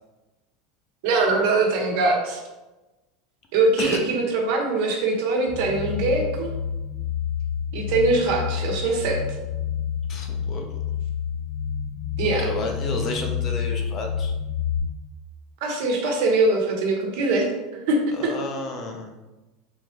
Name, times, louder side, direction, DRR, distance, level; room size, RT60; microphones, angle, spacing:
voice 1, 1.0-2.4 3.5-6.5 7.7-9.2 12.2-12.5 15.6-18.3, right 3 dB, 60° right, 1 dB, 0.8 m, -22 dB
sound 1, 5.5-14.8, left 7 dB, 20° right, 0.7 m, -29 dB
voice 2, 10.1-10.7 12.4-14.3 18.1-19.1, left 3 dB, 30° left, 3 dB, 0.5 m, -31 dB
3.5 x 3.0 x 3.2 m, 1.1 s
supercardioid pair, 170°, 0 cm